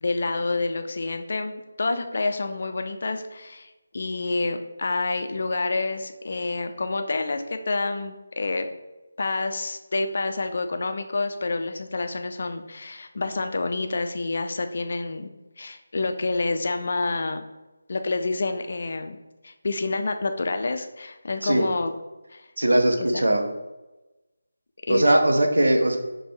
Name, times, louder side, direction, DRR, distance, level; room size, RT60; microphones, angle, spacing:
voice 1, 0.0-8.7 9.2-15.3 15.6-17.5 17.9-19.2 19.4-21.9 22.3-22.4 23.0-23.2 24.9-25.1, left 3 dB, 45° left, 6 dB, 0.4 m, -28 dB
voice 2, 22.6-23.5 24.9-26.0, right 1 dB, 65° right, 4 dB, 0.7 m, -20 dB
5.9 x 2.2 x 3.0 m, 1.1 s
figure-of-eight pair, 155°, 0 cm